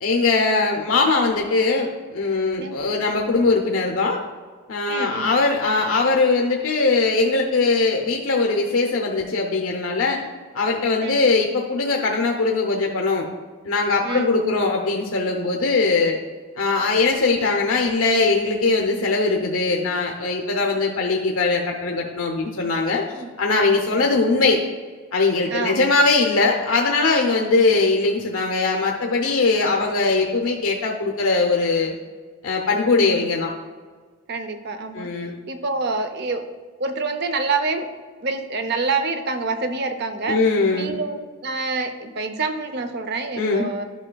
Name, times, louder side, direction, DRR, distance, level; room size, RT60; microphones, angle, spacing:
voice 1, 0.0-4.2 4.7-10.2 10.5-13.3 13.6-16.2 16.6-23.0 23.4-24.6 25.1-31.9 32.4-33.5 34.9-35.4 40.3-40.9 43.4-43.7, left 3 dB, 70° left, 0 dB, 0.7 m, -21 dB
voice 2, 4.9-5.3 11.0-11.2 14.0-14.6 23.1-23.3 24.0-24.1 25.5-25.8 27.3-27.6 33.0-33.2 34.3-35.1 35.5-36.5 36.8-37.9 38.2-40.4 40.7-43.8, right 3 dB, 45° right, 8 dB, 0.6 m, -27 dB
11.0 x 5.8 x 2.3 m, 1.5 s
head